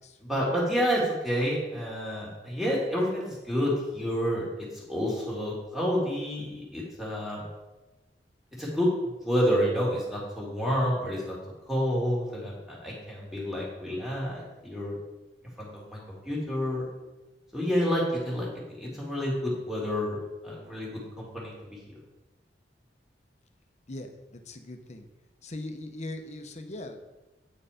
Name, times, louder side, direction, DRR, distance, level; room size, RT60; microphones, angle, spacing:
voice 1, 0.2-7.4 8.6-8.9 9.2-11.3 11.7-14.9 15.6-16.9 17.5-18.5 18.8-20.2 20.4-21.8, equal, ahead, -5 dB, 2.3 m, -29 dB
voice 2, 23.9-25.1 25.4-27.0, left 1 dB, 40° left, 6 dB, 0.8 m, -40 dB
8.9 x 4.7 x 5.0 m, 1.1 s
head